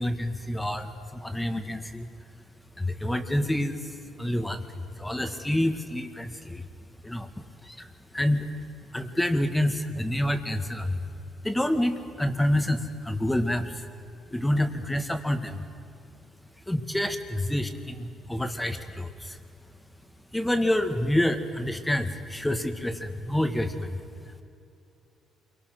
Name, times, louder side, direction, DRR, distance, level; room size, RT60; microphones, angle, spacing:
voice 1, 0.0-2.1 2.8-6.7 7.0-8.5 8.9-11.1 11.4-13.8 14.3-15.6 16.7-19.4 20.3-24.0 24.3-24.4, left 1 dB, 5° left, 7 dB, 1.9 m, -28 dB
28.5 x 23.5 x 6.2 m, 2.6 s
cardioid pair, 100°, 0 cm